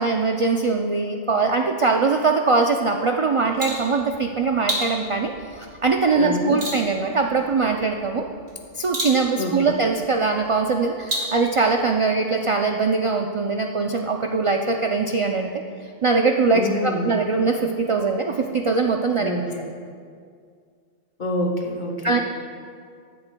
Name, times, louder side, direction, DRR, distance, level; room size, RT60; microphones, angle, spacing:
voice 1, 0.0-8.3 8.7-15.5 15.8-19.3 22.0-22.2, right 4 dB, 60° right, 3 dB, 0.3 m, -22 dB
sound 1, 3.2-11.8, right 1 dB, 90° right, 2.6 m, -34 dB
voice 2, 6.1-6.6 9.4-9.7 16.5-17.1 19.2-19.6 21.2-22.2, left 1 dB, 45° left, 1 dB, 1.3 m, -27 dB
14.5 x 10.5 x 2.2 m, 2.2 s
omnidirectional pair, 1.1 m